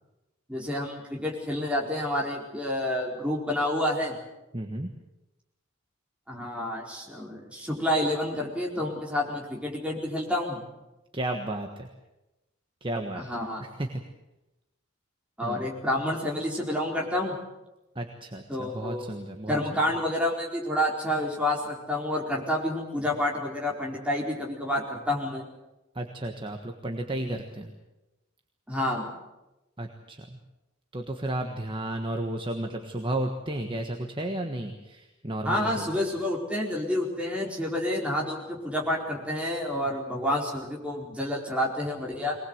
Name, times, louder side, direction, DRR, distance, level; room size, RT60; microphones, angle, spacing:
voice 1, 0.5-4.1 6.3-10.6 13.1-13.6 15.4-17.4 18.5-19.1 19.5-25.4 28.7-29.1 35.4-42.4, left 1 dB, 5° right, -2 dB, 4.4 m, -29 dB
voice 2, 4.5-4.9 11.1-11.9 12.8-13.2 13.8-14.0 15.4-15.7 17.9-19.6 25.9-27.7 29.8-30.4 30.9-36.0, right 1 dB, 25° right, 4 dB, 1.4 m, -33 dB
23.0 x 19.5 x 8.0 m, 1.0 s
head